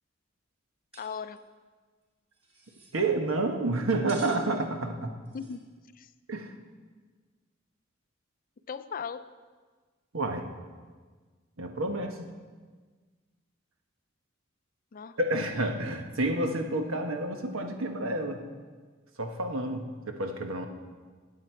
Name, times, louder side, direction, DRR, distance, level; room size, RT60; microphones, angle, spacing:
sound 1, 0.9-1.1 1.3-1.4 2.3-2.9 4.1-4.4 5.2-5.6, right 2 dB, 30° right, 2.6 m, -50 dB
voice 1, 1.0-1.5 5.3-5.6 5.9-6.1 8.7-9.4 14.9-15.2, left 6 dB, 45° left, 12 dB, 0.5 m, -38 dB
voice 2, 2.9-5.1 6.3-6.5 10.1-10.5 11.6-12.3 15.2-18.4 19.2-20.7, right 2 dB, 80° right, 5 dB, 1.2 m, -29 dB
17.5 x 8.0 x 4.6 m, 1.5 s
head